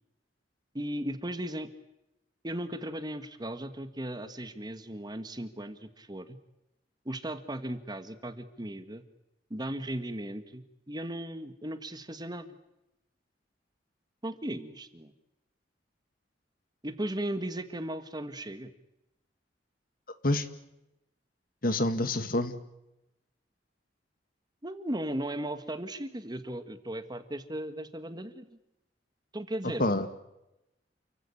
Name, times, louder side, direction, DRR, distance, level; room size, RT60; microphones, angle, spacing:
voice 1, 0.7-1.7 2.4-6.4 7.0-9.0 9.5-12.5 14.2-15.1 16.8-18.7 24.6-28.4 29.3-29.8, right 1 dB, 25° right, 10 dB, 1.7 m, -36 dB
voice 2, 21.6-22.6 29.8-30.1, left 1 dB, 55° left, 11 dB, 1.9 m, -27 dB
29.0 x 16.0 x 9.9 m, 0.90 s
head